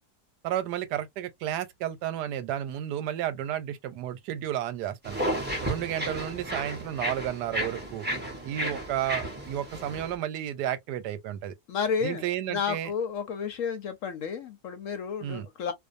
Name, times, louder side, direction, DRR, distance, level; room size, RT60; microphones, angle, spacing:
voice 1, 0.4-5.2 5.6-8.1 8.4-11.5 12.0-12.9 15.2-15.5, right 11 dB, 90° right, 1.2 m, -32 dB
sound 1, 5.0-10.1, right 1 dB, 10° right, 0.5 m, -33 dB
voice 2, 11.7-15.7, left 6 dB, 65° left, 0.8 m, -31 dB
2.6 x 2.2 x 2.5 m
omnidirectional pair, 1.7 m